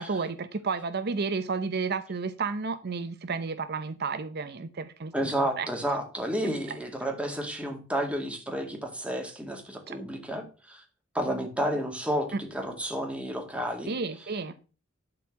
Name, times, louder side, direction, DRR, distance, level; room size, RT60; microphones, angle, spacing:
voice 1, 0.0-5.1 5.6-5.7 6.4-6.5 9.9-10.0 12.3-12.4 13.9-14.5, right 4 dB, 55° right, 0.6 m, -31 dB
voice 2, 5.1-10.8 11.1-13.9, equal, 5° right, 2.2 m, -31 dB
11.5 x 4.4 x 7.3 m
head